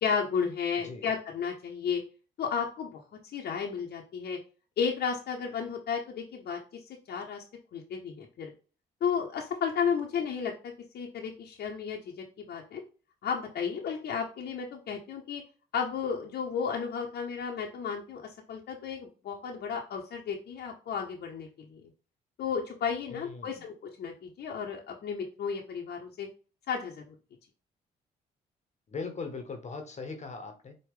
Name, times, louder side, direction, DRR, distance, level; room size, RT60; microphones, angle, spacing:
voice 1, 0.0-2.0 2.4-3.0 3.3-4.4 4.8-6.6 7.1-8.5 9.0-12.8 13.2-15.4 15.7-21.8 22.4-26.3 26.7-27.1, left 6 dB, 60° left, 0 dB, 0.9 m, -33 dB
voice 2, 23.1-23.7 28.9-30.7, left 4 dB, 40° left, 5 dB, 1.1 m, -39 dB
4.8 x 2.5 x 3.6 m, 0.35 s
supercardioid pair, 60°, 19 cm